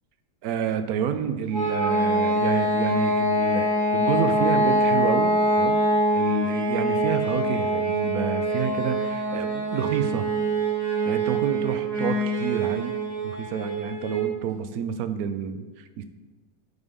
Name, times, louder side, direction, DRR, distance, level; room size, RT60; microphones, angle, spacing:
voice 1, 0.4-5.8 6.1-10.3 11.1-13.0 13.2-16.0, right 8 dB, 70° right, 10 dB, 1.0 m, -29 dB
sound 1, 1.5-14.3, right 1 dB, 55° right, 2.3 m, -24 dB
9.7 x 5.3 x 3.6 m, 1.2 s
omnidirectional pair, 1.8 m